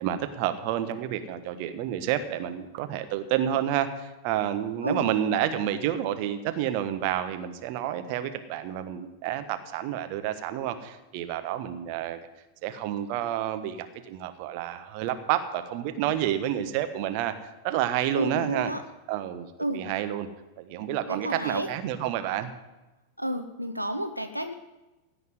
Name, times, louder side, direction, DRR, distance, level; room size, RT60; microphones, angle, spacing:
voice 1, 0.0-12.2 12.6-18.7 19.1-19.5 19.7-20.3 20.6-22.5, right 11 dB, 45° right, 9 dB, 1.2 m, -29 dB
voice 2, 4.8-5.1 18.1-18.8 19.6-19.8 21.1-21.7 23.2-24.5, right 1 dB, 90° right, 7 dB, 0.8 m, -31 dB
16.5 x 5.9 x 9.2 m, 1.1 s
figure-of-eight pair, 90°, 0 cm